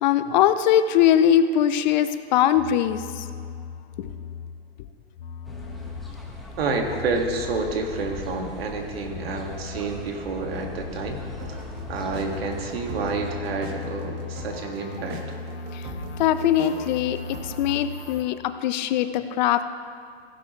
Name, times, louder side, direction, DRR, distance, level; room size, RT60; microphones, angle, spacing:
voice 1, 0.0-3.3 4.0-4.1 15.7-15.8 16.2-19.6, left 10 dB, 45° left, 11 dB, 0.6 m, -21 dB
sound 1, 2.6-4.8 5.1-8.6 8.9-18.2, left 5 dB, 65° left, 1.1 m, -38 dB
sound 2, 5.4-14.1, equal, ahead, 1.5 m, -41 dB
voice 2, 6.6-11.2 11.5-11.6 11.9-15.2, right 3 dB, 70° right, 2 dB, 1.9 m, -29 dB
sound 3, 11.2-17.8, right 3 dB, 50° right, 1.7 m, -42 dB
16.0 x 10.5 x 3.1 m, 2.1 s
hypercardioid pair, 125°, 31 cm